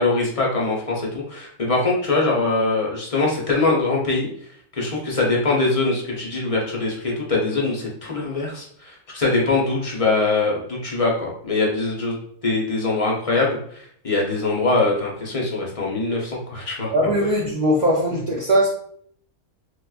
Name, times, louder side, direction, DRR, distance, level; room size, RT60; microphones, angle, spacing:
voice 1, 0.0-4.3 4.7-12.2 12.4-16.9, left 3 dB, 40° left, -3 dB, 0.5 m, -22 dB
voice 2, 16.9-18.7, equal, 55° right, -5 dB, 0.4 m, -20 dB
4.5 x 2.2 x 2.3 m, 0.64 s
omnidirectional pair, 1.4 m